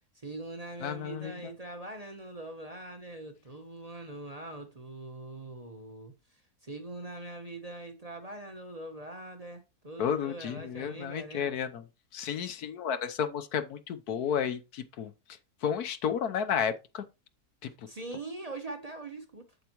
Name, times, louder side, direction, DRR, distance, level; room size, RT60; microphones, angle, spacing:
voice 1, 0.1-11.6 17.9-19.5, right 2 dB, 25° right, 1.0 m, -42 dB
voice 2, 0.8-1.5 10.0-11.8 12.1-15.1 15.6-17.0 17.6-17.7, left 8 dB, 75° left, 1.4 m, -32 dB
8.2 x 8.1 x 3.0 m
omnidirectional pair, 1.6 m